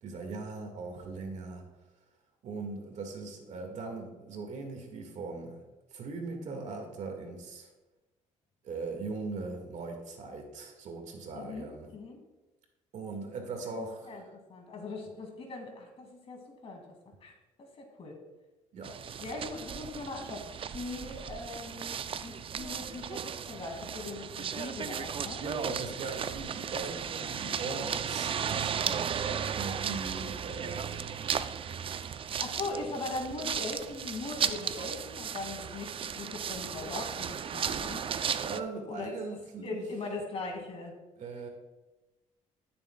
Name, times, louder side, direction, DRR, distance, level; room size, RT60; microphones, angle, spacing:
voice 1, 0.0-1.6 2.4-5.6 5.9-7.7 8.6-11.9 12.9-14.1 18.7-19.0 25.4-31.4 32.3-32.4 38.4-39.8 41.2-41.5, right 3 dB, 65° right, 3 dB, 1.8 m, -40 dB
voice 2, 11.3-12.2 13.8-17.3 17.6-18.2 19.2-25.4 32.4-38.2 38.9-39.1 39.6-41.0, left 3 dB, 50° left, 2 dB, 2.2 m, -40 dB
sound 1, 18.8-38.6, right 8 dB, 45° right, 0.4 m, -35 dB
13.0 x 6.9 x 2.3 m, 1.1 s
cardioid pair, 85°, 13 cm